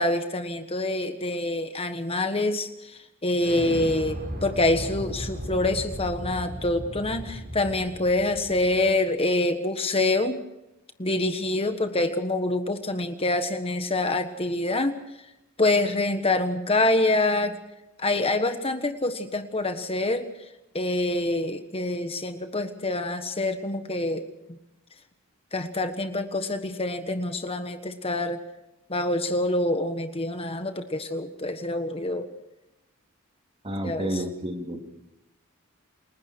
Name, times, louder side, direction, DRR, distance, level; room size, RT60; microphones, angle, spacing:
voice 1, 0.0-10.4 11.0-14.9 15.6-17.6 18.0-20.3 20.7-24.6 25.5-28.4 28.9-32.3 33.8-34.2, left 2 dB, 30° left, 8 dB, 1.4 m, -26 dB
Explosion, 3.4-8.9, equal, 45° right, 4.8 m, -36 dB
voice 2, 33.6-34.8, right 1 dB, 25° right, 4 dB, 3.2 m, -30 dB
29.0 x 21.0 x 4.6 m, 0.90 s
head